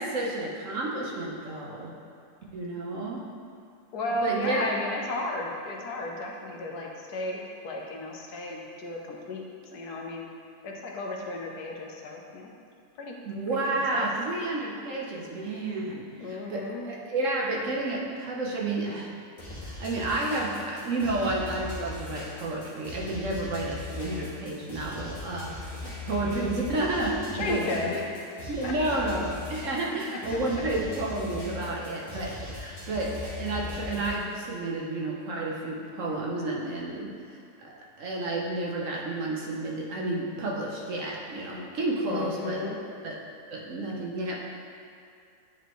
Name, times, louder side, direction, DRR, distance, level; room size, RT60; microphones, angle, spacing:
voice 1, 0.0-1.9 2.5-3.2 4.2-4.6 13.2-19.1 19.5-25.7 26.0-27.9 28.5-42.6 43.0-43.1 43.5-44.4, right 2 dB, 60° right, -3 dB, 1.1 m, -31 dB
voice 2, 3.9-9.4 9.7-10.3 10.6-12.5 13.0-13.2 13.5-14.1 16.2-16.8 27.3-28.0 28.6-28.7 30.3-30.6 42.1-42.8, left 2 dB, 75° left, -1 dB, 1.3 m, -34 dB
sound 1, 19.4-34.2, left 2 dB, 35° left, 1.5 m, -39 dB
9.0 x 4.7 x 3.1 m, 2.5 s
omnidirectional pair, 1.7 m